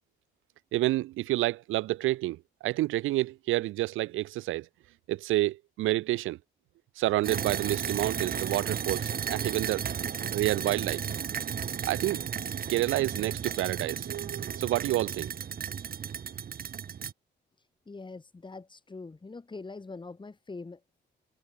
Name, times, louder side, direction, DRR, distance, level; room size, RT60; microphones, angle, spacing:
voice 1, 0.7-4.7 5.1-6.4 7.0-9.8 10.3-11.0 11.8-12.2 12.7-15.3, right 16 dB, 90° right, 1.1 m, -29 dB
sound 1, 7.2-17.1, right 7 dB, 50° right, 2.5 m, -34 dB
voice 2, 17.6-20.8, left 3 dB, 25° left, 5.2 m, -43 dB
cardioid pair, 90°, 20 cm